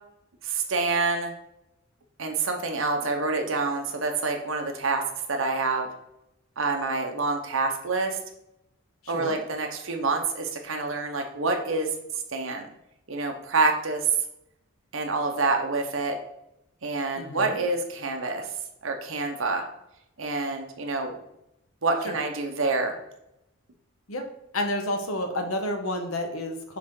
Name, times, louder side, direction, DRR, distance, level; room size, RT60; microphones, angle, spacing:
voice 1, 0.4-1.3 2.2-5.0 5.3-5.9 6.6-8.2 9.1-11.9 12.3-12.7 13.1-14.1 14.9-16.2 16.8-18.5 18.8-19.6 20.2-21.2 21.8-23.0, right 3 dB, 65° right, 3 dB, 1.0 m, -27 dB
voice 2, 9.0-9.4 17.1-17.6 22.0-22.1 24.1-24.3 24.5-26.8, left 1 dB, 85° left, 5 dB, 1.1 m, -30 dB
6.9 x 3.7 x 3.8 m, 0.83 s
head